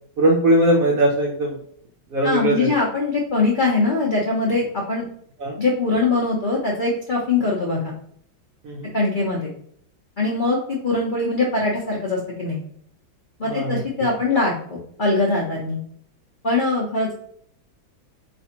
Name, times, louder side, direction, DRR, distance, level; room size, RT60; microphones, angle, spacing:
voice 1, 0.2-1.6 2.1-2.7 5.4-5.6 8.6-8.9 13.4-13.8, right 1 dB, 65° right, 0 dB, 0.8 m, -20 dB
voice 2, 2.2-5.1 5.6-7.9 8.9-9.5 10.2-12.6 13.4-15.8 16.4-17.2, left 3 dB, 60° left, -4 dB, 0.5 m, -22 dB
4.3 x 3.0 x 2.9 m, 0.65 s
omnidirectional pair, 2.1 m